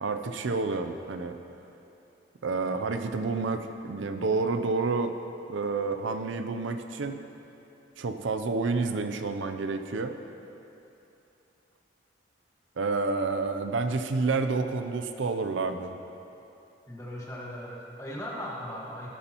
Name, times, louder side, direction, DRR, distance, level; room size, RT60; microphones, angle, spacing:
voice 1, 0.0-1.3 2.4-5.1 5.5-7.2 8.0-10.1 12.8-15.9, right 3 dB, 80° right, 7 dB, 0.5 m, -29 dB
voice 2, 16.9-19.1, equal, 15° left, -4 dB, 1.5 m, -38 dB
17.0 x 8.3 x 3.0 m, 2.9 s
head